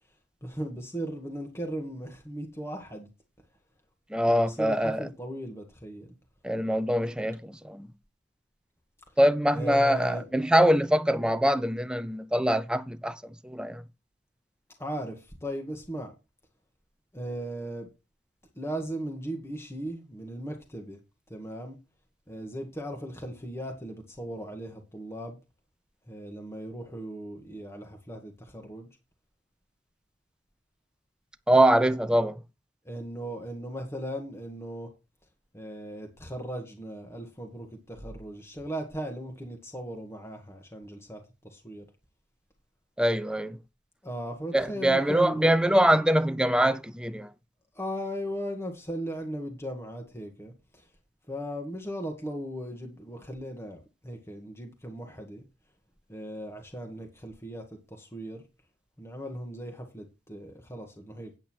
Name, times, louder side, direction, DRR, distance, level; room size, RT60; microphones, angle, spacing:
voice 1, 0.4-3.1 4.3-6.1 9.5-10.3 14.8-16.1 17.1-17.9 18.5-21.0 21.3-21.8 22.3-25.4 26.1-28.9 32.8-34.9 35.5-41.9 44.0-45.6 47.7-50.9 51.3-55.4 56.1-58.4 59.0-61.3, equal, 15° left, 1.5 m, -37 dB
voice 2, 4.1-5.1 6.4-7.9 9.2-13.8 31.5-32.4 43.0-43.6 44.5-47.3, right 1 dB, 5° right, 0.5 m, -24 dB
9.0 x 7.9 x 4.4 m
head